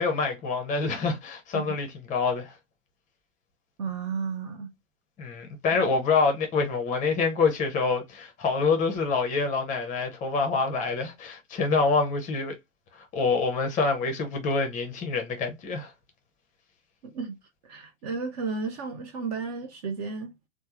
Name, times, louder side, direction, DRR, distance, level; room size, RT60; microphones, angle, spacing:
voice 1, 0.0-2.5 5.2-12.6 12.9-15.9, left 4 dB, 20° left, 0.7 m, -26 dB
voice 2, 3.8-4.7 5.7-5.8 17.0-17.3 17.6-20.3, right 5 dB, 30° right, 0.5 m, -33 dB
3.2 x 2.0 x 2.8 m
figure-of-eight pair, 100°, 38 cm